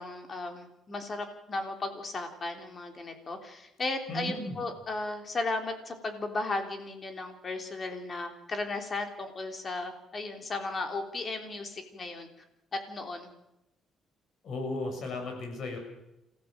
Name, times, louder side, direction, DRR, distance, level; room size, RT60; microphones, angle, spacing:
voice 1, 0.0-12.3 12.7-13.3, left 3 dB, 40° left, 5 dB, 3.5 m, -35 dB
voice 2, 4.1-4.6 14.4-15.8, left 2 dB, 65° left, 4 dB, 6.9 m, -35 dB
27.0 x 15.0 x 7.5 m, 0.92 s
cardioid pair, 90°, 0 cm